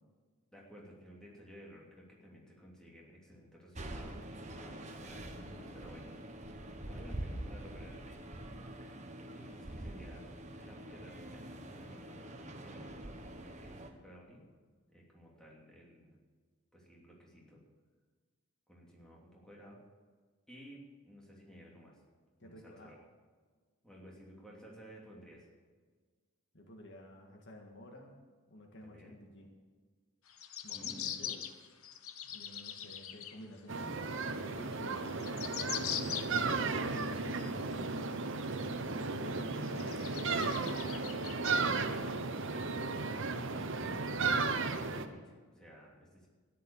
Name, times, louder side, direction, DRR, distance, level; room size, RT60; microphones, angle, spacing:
voice 1, 0.5-4.2 4.5-6.1 6.5-8.1 8.4-9.0 9.3-10.3 10.5-12.3 12.6-14.4 14.9-16.1 16.7-17.6 18.7-19.8 20.5-22.0 22.4-23.0 23.8-25.5 28.8-29.2 30.7-31.2 34.5-34.9 35.5-35.6 42.4-46.3, equal, 5° left, -4 dB, 3.0 m, -54 dB
sound 1, 3.8-13.9, right 1 dB, 30° right, 1.2 m, -45 dB
voice 2, 22.4-22.9 26.5-28.1 28.5-29.5 30.6-31.4 32.2-34.0 34.5-38.2 39.1-41.6, left 1 dB, 50° left, 2 dB, 1.8 m, -52 dB
sound 2, 30.3-33.4 33.9-34.0 34.7-34.8 35.0-36.6 36.9-37.8 38.4-38.5 39.0-39.1 39.6-42.1 42.6-42.7, left 9 dB, 70° left, 1.0 m, -42 dB
sound 3, 33.7-45.1, right 3 dB, 55° right, 1.0 m, -35 dB
13.5 x 10.5 x 7.2 m, 1.5 s
head